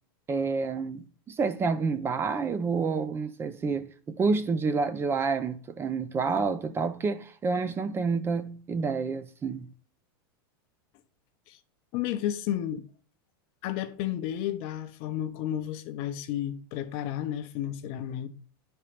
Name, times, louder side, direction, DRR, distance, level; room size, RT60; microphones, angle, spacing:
voice 1, 0.3-9.7, right 4 dB, 20° right, 0.6 m, -29 dB
voice 2, 11.9-12.9 13.6-18.3, left 11 dB, 50° left, 0.8 m, -32 dB
9.5 x 4.4 x 5.1 m
supercardioid pair, 140°, 12 cm